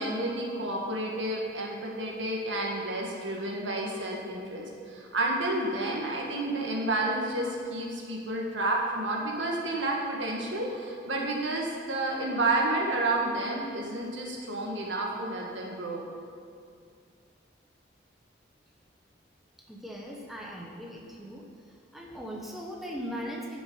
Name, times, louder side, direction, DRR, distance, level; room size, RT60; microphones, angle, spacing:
voice 1, 0.0-16.0, right 2 dB, 75° right, -1 dB, 1.7 m, -30 dB
voice 2, 19.7-21.5 21.9-23.6, equal, ahead, -2 dB, 0.8 m, -39 dB
11.0 x 6.0 x 5.5 m, 2.3 s
head